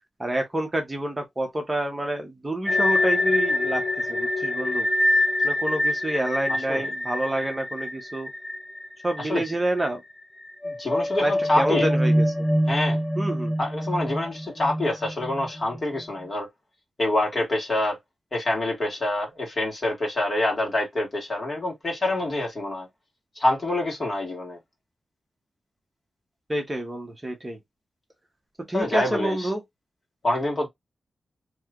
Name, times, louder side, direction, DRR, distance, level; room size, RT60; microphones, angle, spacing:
voice 1, 0.2-3.8 4.1-4.9 5.4-8.3 9.0-10.0 11.2-12.5 13.2-13.5 26.5-27.6 28.7-29.6, right 1 dB, 20° right, 0.9 m, -28 dB
sound 1, 2.7-9.5 9.8-9.9 10.4-15.8, left 1 dB, 15° left, 0.7 m, -25 dB
voice 2, 9.2-9.5 10.6-11.9 12.7-13.0 13.6-16.5 17.0-18.0 18.3-22.9 23.3-24.6 28.7-29.5 30.2-30.7, left 1 dB, 35° left, 1.7 m, -26 dB
3.2 x 2.9 x 2.4 m
wide cardioid pair, 110°, 0 cm